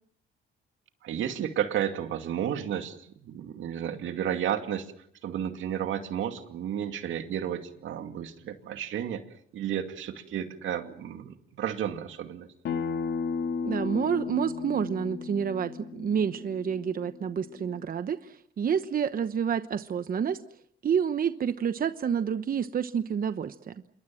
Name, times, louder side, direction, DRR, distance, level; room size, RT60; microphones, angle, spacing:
voice 1, 1.0-4.9 5.2-9.2 9.5-12.5, right 10 dB, 75° right, 7 dB, 2.4 m, -32 dB
Acoustic guitar, 12.6-17.8, left 5 dB, 65° left, 2.9 m, -34 dB
voice 2, 13.6-20.4 20.8-23.7, right 7 dB, 45° right, 11 dB, 1.0 m, -29 dB
27.5 x 22.5 x 7.7 m, 0.68 s
cardioid pair, 90°, 20 cm